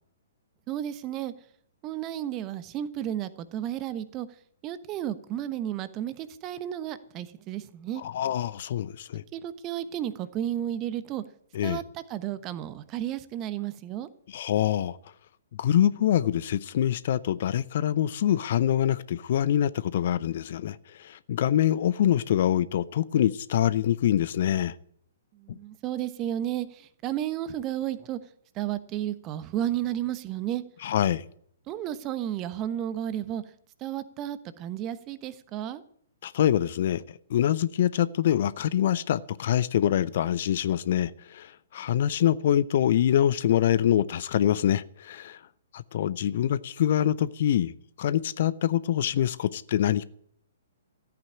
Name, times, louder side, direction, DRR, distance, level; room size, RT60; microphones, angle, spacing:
voice 1, 0.7-1.3 1.8-4.3 4.6-8.0 9.3-11.2 11.6-14.1 25.3-28.2 28.5-30.6 31.7-33.4 33.8-35.8, right 11 dB, 30° right, 1.1 m, -32 dB
voice 2, 8.0-9.2 11.5-11.8 14.3-15.0 15.6-24.7 25.5-25.6 30.8-31.2 36.2-37.0 37.3-45.4 45.7-50.0, left 11 dB, 50° left, 0.6 m, -25 dB
14.0 x 8.9 x 8.7 m
figure-of-eight pair, 120°, 0 cm